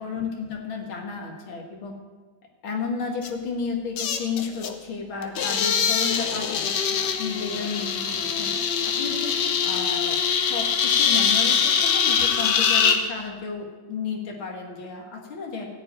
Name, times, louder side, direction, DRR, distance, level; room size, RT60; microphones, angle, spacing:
voice 1, 0.0-1.9 2.6-8.5 8.8-9.4 9.6-15.7, left 5 dB, 85° left, 1 dB, 2.6 m, -32 dB
sound 1, 3.2-3.3 4.0-4.8 5.2-13.0, left 7 dB, 65° left, 1.4 m, -23 dB
15.5 x 5.3 x 8.9 m, 1.3 s
omnidirectional pair, 2.2 m